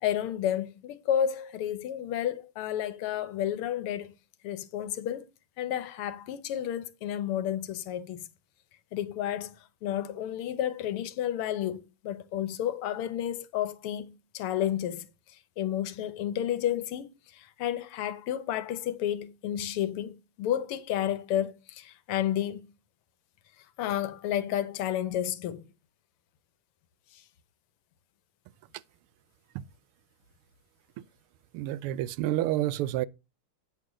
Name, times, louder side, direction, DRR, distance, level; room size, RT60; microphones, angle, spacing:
voice 1, 0.0-4.1 4.4-5.3 5.6-8.3 8.9-15.1 15.6-22.7 23.8-25.6 27.1-27.2, left 10 dB, 90° left, 1.8 m, -31 dB
voice 2, 31.5-33.1, right 14 dB, 90° right, 1.5 m, -29 dB
8.9 x 6.3 x 3.7 m
omnidirectional pair, 2.4 m